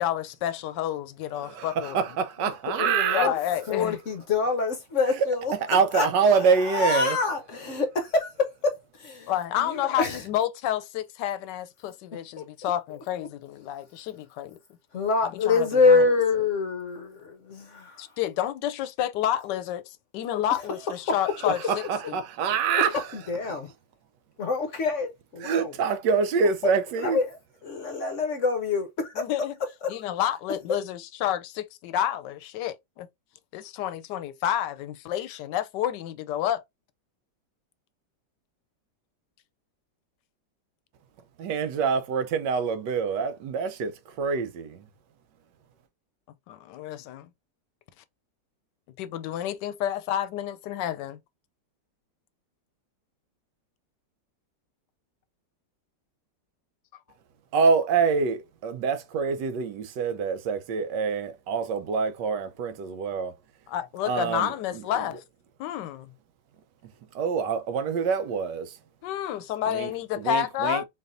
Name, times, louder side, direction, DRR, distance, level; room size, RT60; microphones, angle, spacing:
voice 1, 0.0-2.0 3.1-4.0 9.3-14.6 15.2-16.0 18.0-22.2 29.2-29.5 29.9-33.1 33.5-36.6 46.5-47.3 49.0-51.2 63.7-65.2 65.6-66.1 69.0-70.8, left 11 dB, 75° left, 1.2 m, -30 dB
voice 2, 1.4-3.3 5.7-7.2 21.7-23.1 23.5-23.6 25.4-27.2 41.4-44.8 57.5-63.3 64.1-64.5 67.1-68.7 69.7-69.9 70.2-70.8, right 5 dB, 75° right, 1.3 m, -25 dB
voice 3, 2.4-3.3 3.7-6.1 6.3-9.3 9.6-10.2 12.1-12.7 14.9-18.0 21.1-21.2 22.7-23.7 24.4-25.7 27.0-29.3 29.8-30.0, left 4 dB, 55° left, 0.9 m, -26 dB
4.0 x 3.4 x 2.5 m
omnidirectional pair, 2.0 m